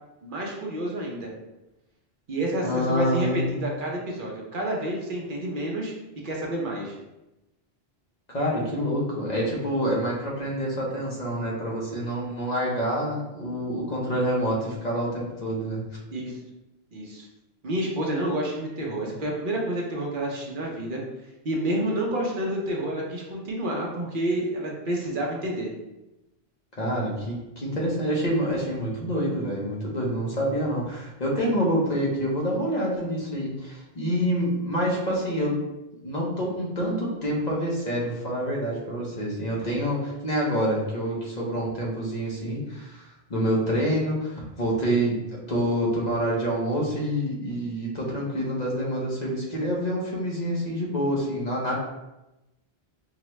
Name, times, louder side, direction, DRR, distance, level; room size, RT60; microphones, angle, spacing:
voice 1, 0.2-1.3 2.3-5.9 6.2-7.0 16.1-16.4 16.9-17.3 17.6-21.0 21.4-25.7, right 1 dB, 55° right, -1 dB, 0.9 m, -29 dB
voice 2, 2.6-3.7 8.3-15.8 26.8-35.6 36.0-51.7, equal, 45° left, -3 dB, 0.9 m, -27 dB
4.7 x 2.2 x 3.0 m, 0.96 s
omnidirectional pair, 1.1 m